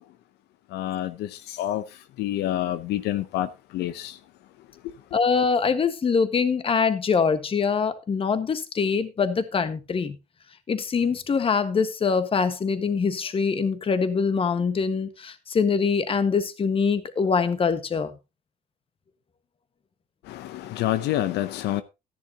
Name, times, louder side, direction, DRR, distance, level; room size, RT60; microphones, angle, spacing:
voice 1, 0.7-1.8 2.2-3.5 3.7-4.1 20.3-21.8, left 13 dB, 80° left, 0.7 m, -27 dB
voice 2, 5.1-10.2 10.7-18.1, left 5 dB, 35° left, 1.4 m, -24 dB
13.5 x 10.5 x 2.8 m
cardioid pair, 110°, 17 cm